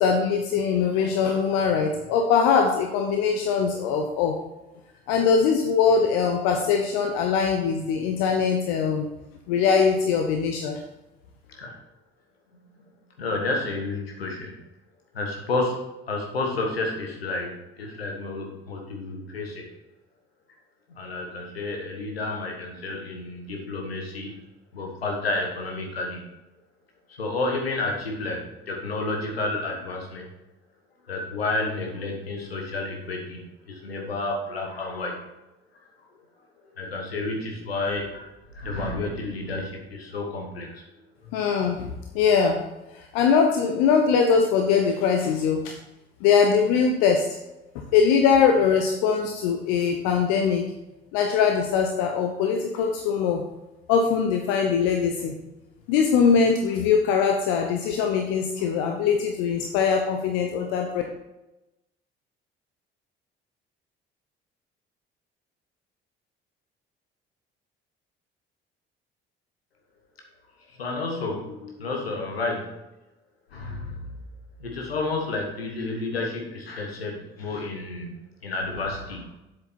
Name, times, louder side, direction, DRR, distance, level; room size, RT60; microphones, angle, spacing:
voice 1, 0.0-4.4 5.1-9.0 9.5-10.8 41.3-41.9 42.1-42.6 43.0-45.7 46.2-47.2 47.9-50.7 51.1-53.4 53.9-55.4 55.9-61.0, left 6 dB, 60° left, 3 dB, 0.9 m, -22 dB
voice 2, 13.2-14.5 15.1-15.8 16.1-19.7 20.9-24.4 24.7-26.2 27.2-30.2 31.1-33.4 33.7-35.2 36.8-38.3 38.5-40.8 70.8-72.7 73.5-74.0 74.6-79.2, left 2 dB, 80° left, 1 dB, 1.5 m, -30 dB
7.9 x 6.8 x 4.3 m, 0.99 s
figure-of-eight pair, 50°, 30 cm